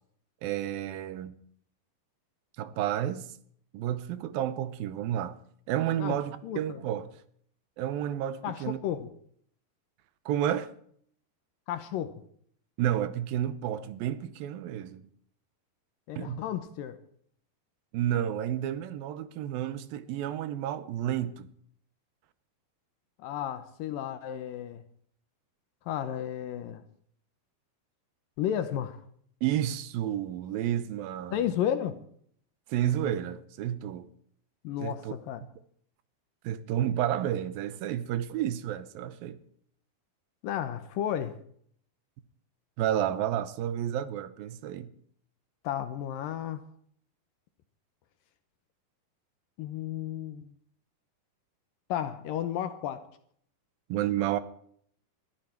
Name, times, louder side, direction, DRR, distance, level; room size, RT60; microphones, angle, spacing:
voice 1, 0.4-1.3 2.6-3.3 3.7-5.4 5.7-7.1 7.8-8.8 10.3-10.7 12.8-15.0 16.2-16.4 17.9-21.5 29.4-31.5 32.7-34.1 34.8-35.1 36.4-39.4 42.8-44.9 53.9-54.4, right 11 dB, 75° right, 2.5 m, -31 dB
voice 2, 6.4-6.8 8.4-9.1 11.7-12.2 16.1-17.0 23.2-24.8 25.9-26.8 28.4-29.0 31.3-32.0 34.6-35.4 40.4-41.4 45.6-46.6 49.6-50.5 51.9-53.0, left 10 dB, 75° left, 2.4 m, -33 dB
21.0 x 13.5 x 4.5 m
omnidirectional pair, 4.5 m